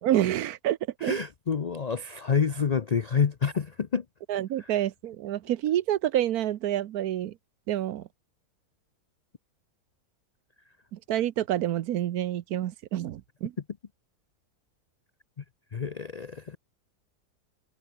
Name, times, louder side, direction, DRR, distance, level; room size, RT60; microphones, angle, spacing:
voice 1, 0.0-1.2 4.3-7.4 7.7-8.1 10.9-13.5, right 12 dB, 70° right, 1.2 m, -28 dB
voice 2, 1.0-4.0 4.6-4.7 15.7-16.6, left 6 dB, 80° left, 0.3 m, -28 dB
omnidirectional pair, 1.7 m